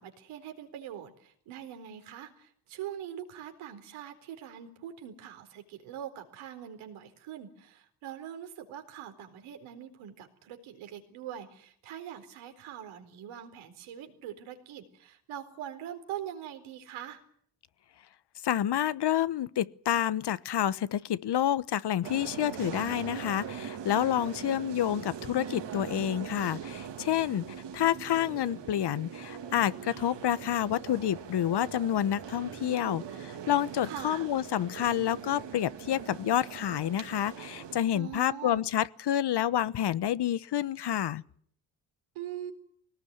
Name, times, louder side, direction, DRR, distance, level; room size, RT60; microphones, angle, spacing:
voice 1, 0.0-17.2 33.8-34.3 37.9-38.7 42.1-42.5, right 10 dB, 85° right, 4.1 m, -43 dB
voice 2, 18.4-27.4 27.7-41.2, left 11 dB, 55° left, 1.1 m, -29 dB
sound 1, 22.0-37.8, right 8 dB, 60° right, 3.2 m, -41 dB
21.5 x 18.5 x 9.5 m
supercardioid pair, 60°, 47 cm